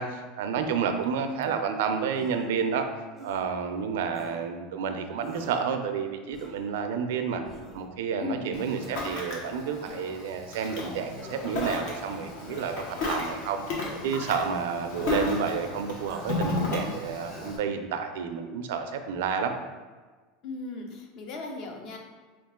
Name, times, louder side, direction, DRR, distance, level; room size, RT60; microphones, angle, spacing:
voice 1, 0.0-2.8 3.2-7.4 7.7-13.6 14.0-19.5, right 6 dB, 80° right, 7 dB, 0.4 m, -30 dB
voice 2, 0.9-1.6 8.2-8.6 20.4-22.0, left 3 dB, 45° left, 2 dB, 0.6 m, -37 dB
sound 1, 2.1-2.6 3.2-3.4 4.1-4.4 5.2-5.7 6.3-6.7 7.4-7.9 8.8-9.0 9.9-10.3 11.1-11.6 12.5-12.8 13.8-14.1 15.0-15.2 16.1-16.4 17.3-17.6, left 1 dB, 10° left, 0.7 m, -45 dB
Ocean, 8.5-17.6, left 2 dB, 65° left, 1.0 m, -34 dB
4.5 x 2.4 x 3.6 m, 1.3 s
supercardioid pair, 150°, 0 cm